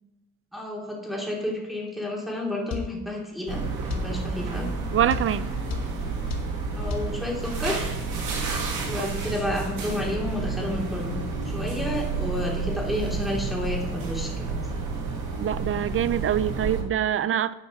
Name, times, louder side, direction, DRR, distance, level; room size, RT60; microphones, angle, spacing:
voice 1, 0.5-4.7 6.8-7.9 8.7-11.2 11.5-14.7, left 1 dB, ahead, 2.8 m, -31 dB
sound 1, 2.7-2.9 3.9-4.1 5.1-5.3 5.7-5.9 6.3-6.5 6.9-7.1, left 7 dB, 60° left, 1.2 m, -31 dB
sound 2, 3.5-16.8, right 4 dB, 90° right, 2.0 m, -30 dB
voice 2, 4.9-5.5 9.0-9.1 15.4-17.5, right 10 dB, 45° right, 0.5 m, -25 dB
10.5 x 5.2 x 4.8 m
cardioid pair, 90°, 30 cm